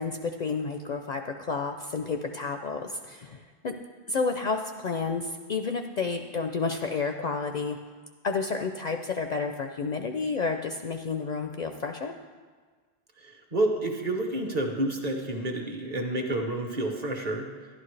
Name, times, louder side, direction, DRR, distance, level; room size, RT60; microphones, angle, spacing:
voice 1, 0.0-3.8 4.1-7.8 8.2-12.1, left 4 dB, 55° left, 5 dB, 0.5 m, -30 dB
voice 2, 13.2-17.5, right 1 dB, 40° right, 3 dB, 1.0 m, -29 dB
11.5 x 11.5 x 3.2 m, 1.5 s
omnidirectional pair, 1.0 m